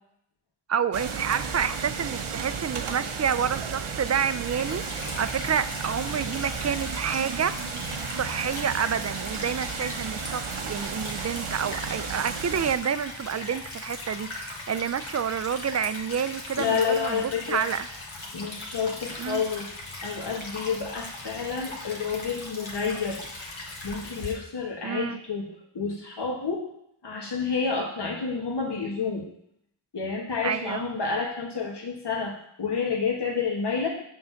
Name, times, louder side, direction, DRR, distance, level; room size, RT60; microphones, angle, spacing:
voice 1, 0.7-7.7 8.2-17.9 19.2-19.4 24.8-25.2 30.4-30.8, right 7 dB, 35° right, 14 dB, 0.4 m, -29 dB
sound 1, 0.9-12.8, right 5 dB, 85° right, 0.8 m, -34 dB
Stream / Trickle dribble, 4.4-24.3, left 2 dB, 75° left, 1.6 m, -39 dB
voice 2, 16.6-17.7 18.3-19.7 20.0-23.2 23.8-26.7 27.0-29.3 29.9-33.9, left 5 dB, 55° left, 0 dB, 1.5 m, -29 dB
6.6 x 3.9 x 5.7 m, 0.73 s
cardioid pair, 45°, 48 cm